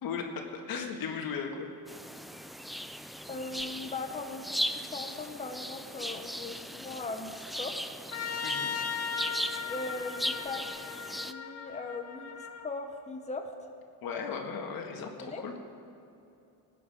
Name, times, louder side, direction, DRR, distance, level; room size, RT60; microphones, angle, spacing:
voice 1, 0.0-1.7 8.4-8.7 14.0-15.5, left 6 dB, 75° left, 2 dB, 1.9 m, -36 dB
sound 1, 1.9-11.3, equal, ahead, 0.4 m, -38 dB
voice 2, 3.3-7.8 9.7-10.7 11.2-13.7 15.2-15.4, left 3 dB, 20° left, 4 dB, 1.0 m, -39 dB
Trumpet, 8.1-12.7, left 6 dB, 40° left, 1.1 m, -37 dB
18.5 x 9.4 x 5.1 m, 2.8 s
cardioid pair, 105°, 36 cm